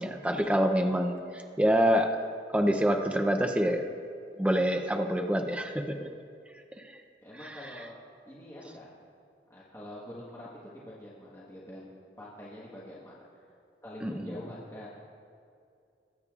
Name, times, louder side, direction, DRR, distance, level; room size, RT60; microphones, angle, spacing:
voice 1, 0.0-2.1 2.5-3.8 4.4-6.1 6.8-7.0 7.6-7.7 14.0-14.4, equal, 5° right, 5 dB, 0.5 m, -26 dB
voice 2, 7.2-8.0 8.3-8.9 9.5-13.5 13.8-15.0, left 1 dB, 15° left, -7 dB, 1.3 m, -45 dB
20.5 x 8.2 x 2.4 m, 2.4 s
head